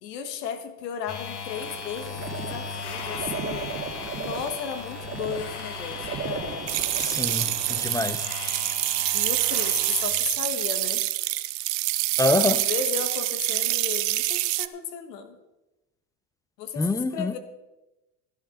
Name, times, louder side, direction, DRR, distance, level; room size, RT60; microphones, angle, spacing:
voice 1, 0.0-3.7 4.1-6.7 9.1-11.0 12.5-15.4 16.6-16.9 17.1-17.4, left 7 dB, 85° left, 8 dB, 1.4 m, -34 dB
sound 1, 1.1-10.1, left 5 dB, 55° left, 2.4 m, -37 dB
sound 2, 1.5-7.8, right 5 dB, 25° right, 1.7 m, -36 dB
sound 3, 6.7-14.7, right 17 dB, 90° right, 0.7 m, -26 dB
voice 2, 7.0-8.3 12.2-12.7 16.8-17.4, left 2 dB, 10° left, 13 dB, 0.5 m, -26 dB
16.5 x 10.5 x 3.8 m, 1.0 s
hypercardioid pair, 95°, 48 cm